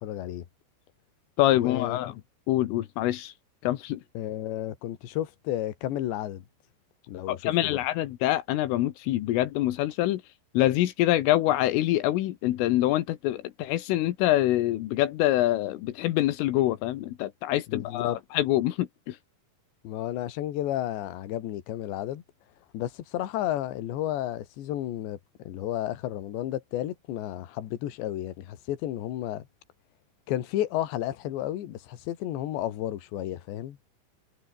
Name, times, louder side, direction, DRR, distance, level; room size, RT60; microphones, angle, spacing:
voice 1, 0.0-0.5 1.5-2.0 4.2-6.5 7.1-7.8 17.7-18.2 19.8-22.2 22.7-25.2 25.5-29.5 30.3-33.8, left 13 dB, 65° left, 4.1 m, -32 dB
voice 2, 1.4-2.1 2.5-3.3 3.6-4.0 7.3-10.2 10.6-19.2, left 15 dB, 85° left, 3.9 m, -25 dB
omnidirectional pair, 5.7 m